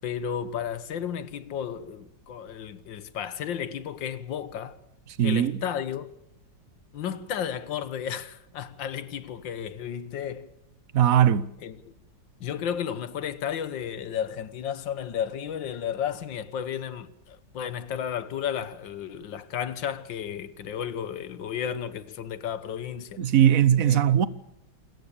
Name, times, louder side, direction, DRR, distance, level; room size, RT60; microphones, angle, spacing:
voice 1, 0.0-4.8 5.2-6.1 6.9-10.5 11.6-11.8 12.4-23.2 23.9-24.0, left 8 dB, 80° left, 1.8 m, -33 dB
voice 2, 5.2-5.6 10.9-11.5 23.2-24.3, right 10 dB, 55° right, 1.2 m, -20 dB
27.5 x 14.5 x 6.9 m
omnidirectional pair, 2.0 m